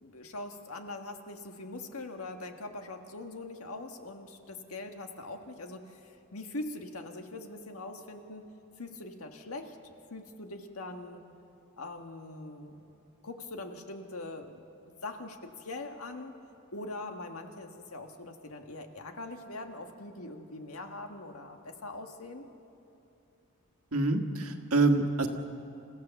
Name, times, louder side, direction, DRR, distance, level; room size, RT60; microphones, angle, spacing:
voice 1, 0.0-8.5 8.8-11.2 11.8-12.8 13.2-14.6 15.0-16.3 16.7-22.5, left 2 dB, 75° left, 5 dB, 1.6 m, -42 dB
voice 2, 23.9-25.3, right 3 dB, 80° right, 4 dB, 1.6 m, -26 dB
28.5 x 15.5 x 7.1 m, 2.8 s
head